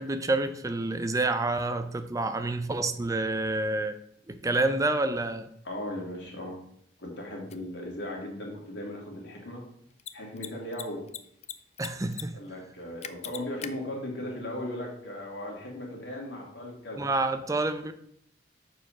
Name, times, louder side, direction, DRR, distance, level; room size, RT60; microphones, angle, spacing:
voice 1, 0.0-4.0 4.3-5.5 11.8-12.4 17.0-17.9, right 2 dB, 20° right, 10 dB, 0.5 m, -28 dB
voice 2, 5.6-6.6 7.0-9.6 10.1-11.1 12.3-17.0, left 1 dB, 80° left, -1 dB, 2.5 m, -37 dB
Mechanisms, 7.5-7.6 9.9-10.1 10.4-10.5 10.7-11.5 11.8-12.2 12.5-12.6 13.0-13.7, left 10 dB, 40° left, 0.4 m, -38 dB
6.9 x 4.7 x 5.7 m, 0.70 s
head